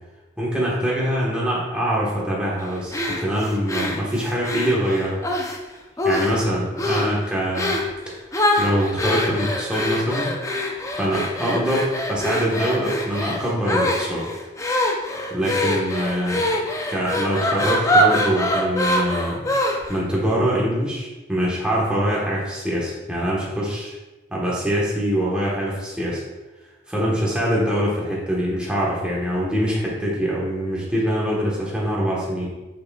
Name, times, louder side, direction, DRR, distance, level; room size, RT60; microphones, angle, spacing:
voice 1, 0.4-5.2 6.0-7.7 8.1-8.2 8.6-10.3 11.0-14.3 15.3-16.4 16.9-19.5 19.9-24.0 24.3-26.2 26.9-32.5, equal, 5° right, -6 dB, 1.2 m, -24 dB
sound 1, 2.9-5.6 6.0-6.5 6.8-7.1 7.5-7.9 8.3-20.0, left 1 dB, 15° left, 0.5 m, -24 dB
7.4 x 5.9 x 2.3 m, 1.1 s
head